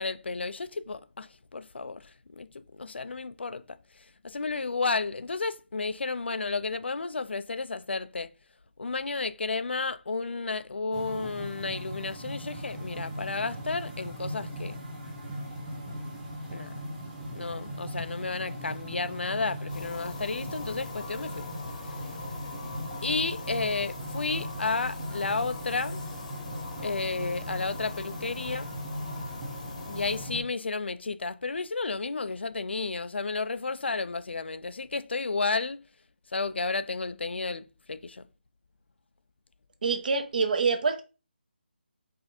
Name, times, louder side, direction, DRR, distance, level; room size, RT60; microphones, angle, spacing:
voice 1, 0.0-3.8 4.2-8.3 8.8-14.8 16.5-16.8 17.3-21.5 23.0-26.0 26.8-28.7 29.9-35.8 36.3-38.3, left 4 dB, 85° left, 0.4 m, -32 dB
sound 1, 10.9-30.4, equal, 10° right, 0.9 m, -39 dB
sound 2, 19.7-30.3, left 4 dB, 40° left, 0.8 m, -43 dB
voice 2, 39.8-41.0, right 4 dB, 50° right, 0.8 m, -26 dB
4.9 x 2.6 x 3.5 m
figure-of-eight pair, 165°, 6 cm